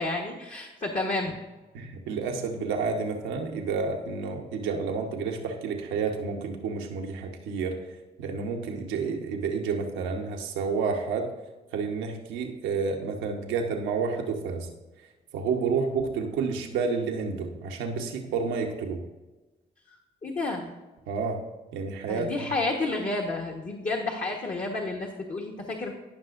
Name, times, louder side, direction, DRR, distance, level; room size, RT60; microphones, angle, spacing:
voice 1, 0.0-1.3 20.2-20.7 22.1-25.9, left 2 dB, 40° left, -1 dB, 1.2 m, -30 dB
voice 2, 1.7-7.8 8.2-11.3 11.7-14.7 15.3-19.0 21.1-21.4 21.7-22.5, right 5 dB, 90° right, 3 dB, 1.0 m, -30 dB
15.0 x 5.6 x 2.5 m, 1.1 s
supercardioid pair, 50°, 19 cm